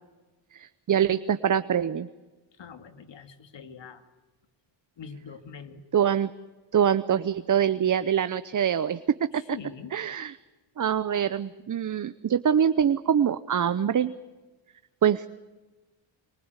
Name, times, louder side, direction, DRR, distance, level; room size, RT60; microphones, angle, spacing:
voice 1, 0.5-2.1 5.9-6.3 6.7-9.3 9.9-10.3 10.8-14.1 15.0-15.3, right 8 dB, 40° right, 12 dB, 0.8 m, -24 dB
voice 2, 2.6-4.0 5.0-5.8 9.5-9.9, left 6 dB, 60° left, 8 dB, 2.4 m, -43 dB
25.5 x 23.5 x 8.1 m, 1.2 s
cardioid pair, 115°, 49 cm